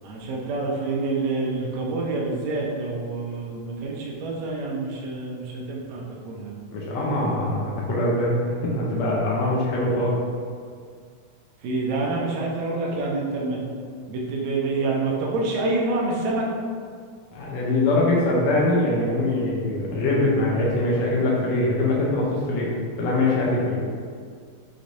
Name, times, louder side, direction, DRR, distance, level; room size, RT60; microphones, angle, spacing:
voice 1, 0.0-6.6 11.6-13.6 14.1-16.5, right 3 dB, 75° right, -3 dB, 1.6 m, -27 dB
voice 2, 6.7-8.3 8.6-10.2 17.3-23.8, left 2 dB, 90° left, -5 dB, 1.4 m, -23 dB
6.1 x 3.1 x 2.6 m, 2.1 s
omnidirectional pair, 3.9 m